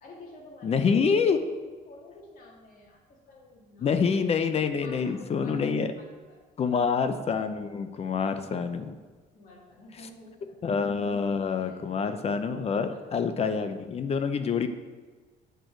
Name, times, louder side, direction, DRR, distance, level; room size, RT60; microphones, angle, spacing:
voice 1, 0.0-4.2 4.8-5.6 6.0-6.8 8.1-8.4 9.3-10.8 11.6-12.2 12.9-13.0 14.2-14.5, left 2 dB, 55° left, -3 dB, 2.2 m, -51 dB
voice 2, 0.6-1.4 3.8-5.9 6.6-9.0 10.6-14.7, left 5 dB, 40° left, 9 dB, 0.6 m, -26 dB
8.2 x 4.5 x 4.6 m, 1.4 s
cardioid pair, 110°, 17 cm